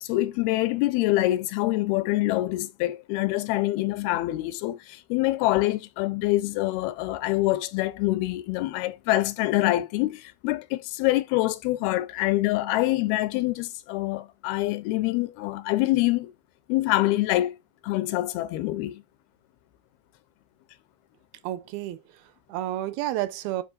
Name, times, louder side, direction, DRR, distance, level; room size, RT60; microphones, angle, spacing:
voice 1, 0.0-16.3 16.7-17.6 17.8-19.0, left 17 dB, 90° left, 2.6 m, -25 dB
voice 2, 21.4-23.6, right 14 dB, 80° right, 2.6 m, -31 dB
10.5 x 4.7 x 2.5 m
omnidirectional pair, 4.5 m